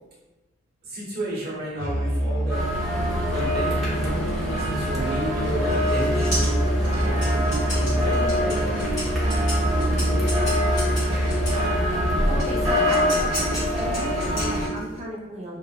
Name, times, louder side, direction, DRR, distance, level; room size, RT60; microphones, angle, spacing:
voice 1, 0.8-2.6 3.3-6.5 7.0-8.7, right 1 dB, 50° right, -6 dB, 0.9 m, -32 dB
Musical instrument, 1.8-12.2, right 1 dB, 80° left, 0.6 m, -26 dB
sound 1, 2.5-14.7, left 1 dB, ahead, 0.8 m, -25 dB
sound 2, 5.4-11.7 12.4-15.0, equal, 35° left, 1.4 m, -34 dB
voice 2, 12.3-15.6, right 1 dB, 35° right, -2 dB, 0.4 m, -33 dB
3.0 x 2.0 x 2.3 m, 1.1 s
head